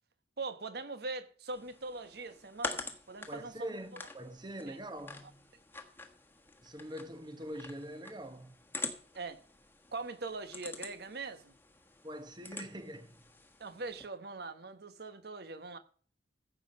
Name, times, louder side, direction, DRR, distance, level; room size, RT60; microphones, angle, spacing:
voice 1, 0.4-3.7 4.7-4.8 9.1-9.4 9.9-11.5 13.6-15.8, right 3 dB, 60° right, 1.2 m, -42 dB
sound 1, 1.5-14.1, left 3 dB, 10° left, 1.4 m, -46 dB
voice 2, 3.3-5.5 6.6-8.6 12.0-13.2, equal, 25° right, 1.1 m, -44 dB
15.0 x 7.5 x 5.4 m
head